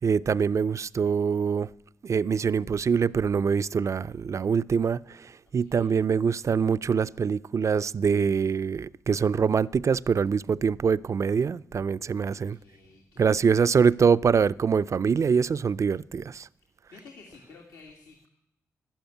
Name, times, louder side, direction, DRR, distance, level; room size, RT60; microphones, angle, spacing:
voice 1, 0.0-1.7 2.0-12.6 13.2-16.5, right 6 dB, 50° right, 0.4 m, -24 dB
voice 2, 5.6-5.9 12.2-13.7 16.9-18.3, left 4 dB, 80° left, 2.4 m, -52 dB
12.0 x 12.0 x 9.2 m
hypercardioid pair, 40°, 7 cm